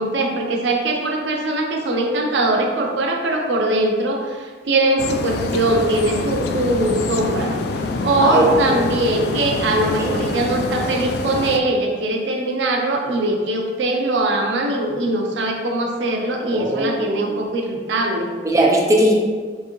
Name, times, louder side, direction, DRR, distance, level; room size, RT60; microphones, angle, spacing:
voice 1, 0.0-18.3, right 2 dB, 80° right, 2 dB, 0.5 m, -21 dB
sound 1, 5.0-11.6, left 3 dB, 60° left, 0.3 m, -25 dB
voice 2, 8.2-8.8 9.9-10.2 16.5-17.3 18.4-19.1, right 1 dB, 20° right, -1 dB, 0.4 m, -19 dB
4.6 x 2.7 x 3.0 m, 1.5 s
head